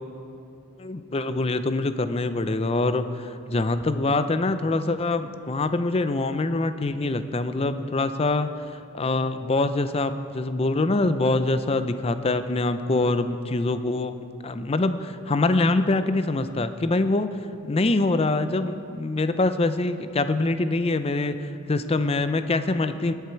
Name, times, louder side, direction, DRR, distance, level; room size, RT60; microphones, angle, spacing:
voice 1, 0.8-14.1 14.4-17.3 17.6-23.1, left 2 dB, 30° left, 11 dB, 0.5 m, -24 dB
20.0 x 8.1 x 4.5 m, 2.6 s
head